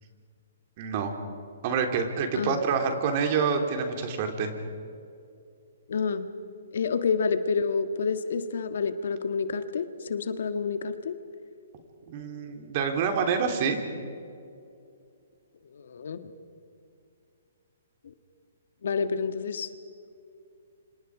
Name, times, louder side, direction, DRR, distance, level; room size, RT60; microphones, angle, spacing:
voice 1, 0.8-1.1 1.6-4.5 12.1-13.8, right 6 dB, 45° right, 5 dB, 3.4 m, -27 dB
voice 2, 5.9-6.3 6.7-11.2 15.7-16.3 18.0-18.1 18.8-19.7, left 5 dB, 70° left, 10 dB, 1.6 m, -29 dB
29.0 x 26.0 x 5.0 m, 2.5 s
hypercardioid pair, 140°, 0 cm